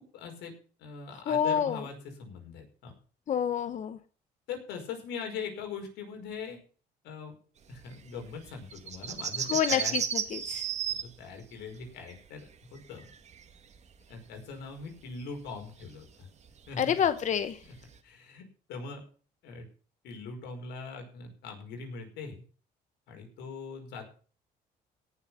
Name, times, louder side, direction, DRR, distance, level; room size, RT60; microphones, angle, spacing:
voice 1, 0.1-0.5 0.8-2.9 4.5-6.6 7.0-7.4 7.7-10.0 10.9-13.1 14.1-16.3 16.7-17.1 17.6-17.7 18.0-19.0 19.4-19.7 20.0-22.4 23.1-24.0, left 5 dB, 85° left, 4 dB, 5.1 m, -41 dB
voice 2, 1.3-1.8 3.3-4.0 9.5-10.0 10.3-10.6 16.8-17.6, left 8 dB, 45° left, 11 dB, 0.9 m, -27 dB
sound 1, 7.7-14.1 14.3-18.0, right 8 dB, 40° right, 2.0 m, -35 dB
17.5 x 7.3 x 5.7 m, 0.39 s
cardioid pair, 110°, 17 cm